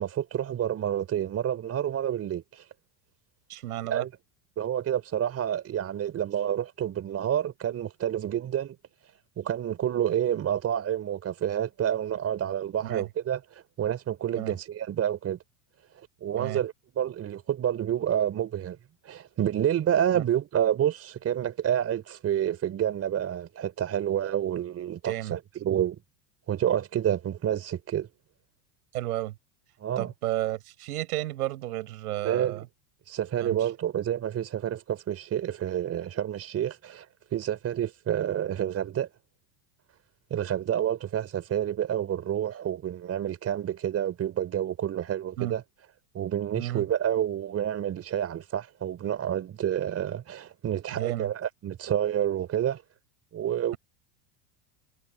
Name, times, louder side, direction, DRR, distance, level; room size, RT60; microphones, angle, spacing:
voice 1, 0.0-2.6 3.9-4.1 4.6-8.8 9.4-13.4 13.8-15.4 16.0-18.8 19.0-26.0 26.5-28.1 29.8-30.1 32.2-32.6 33.1-37.1 37.3-39.1 40.3-45.6 46.1-52.8 53.3-53.7, right 10 dB, 35° right, 4.6 m, -29 dB
voice 2, 3.5-4.0 12.8-13.1 14.4-14.5 16.4-16.6 20.1-20.2 25.0-25.4 28.9-29.3 30.0-32.7 33.4-33.7 45.4-45.5 46.5-46.8 50.9-51.3, right 15 dB, 85° right, 7.5 m, -32 dB
supercardioid pair, 120°, 44 cm